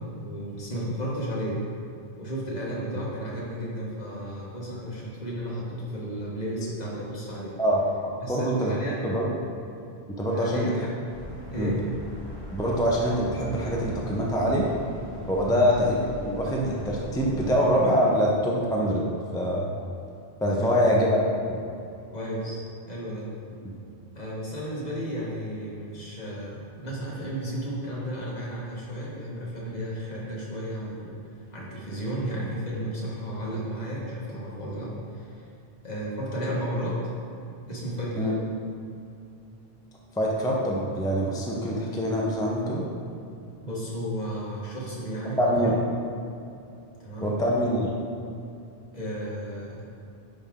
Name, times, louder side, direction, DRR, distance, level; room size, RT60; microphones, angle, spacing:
voice 1, 0.0-1.6 2.2-7.6 8.2-9.1 10.3-10.8 11.5-11.8 15.4-15.7 20.5-20.9 22.1-22.6 22.9-23.3 24.1-35.4 35.8-37.0 37.7-38.4 43.6-45.7 47.0-47.3 48.9-49.8, equal, 40° left, -6 dB, 1.6 m, -33 dB
voice 2, 7.6-8.7 9.0-9.3 10.1-10.7 11.6-11.7 12.5-14.7 15.3-19.0 19.3-19.7 20.4-21.2 21.5-21.6 38.1-38.3 40.1-42.9 45.4-45.8 47.2-47.9, equal, 5° left, -3 dB, 0.5 m, -24 dB
sound 1, 11.1-17.6, equal, 25° right, 1.3 m, -40 dB
9.9 x 3.6 x 3.6 m, 2.7 s
omnidirectional pair, 1.1 m